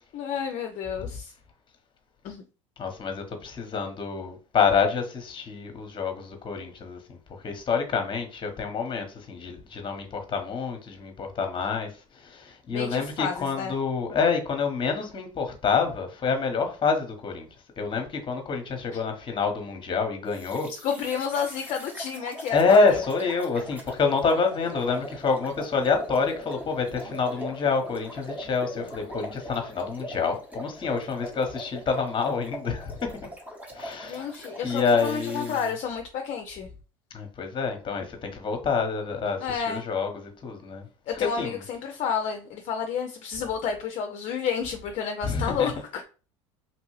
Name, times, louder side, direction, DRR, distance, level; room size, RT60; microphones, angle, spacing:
voice 1, 0.1-1.3 2.2-2.4 12.7-13.7 20.7-23.0 34.0-36.7 39.4-39.8 41.1-46.0, left 7 dB, 50° left, 0.5 m, -30 dB
voice 2, 2.8-7.0 7.4-11.9 12.2-17.5 17.8-20.7 22.5-33.1 33.7-34.2 34.6-35.6 37.1-40.8 41.1-41.6 45.2-45.7, left 5 dB, 30° left, 0.9 m, -27 dB
sound 1, 20.3-35.7, equal, 10° right, 0.9 m, -41 dB
2.9 x 2.6 x 3.1 m
hypercardioid pair, 80°, 16 cm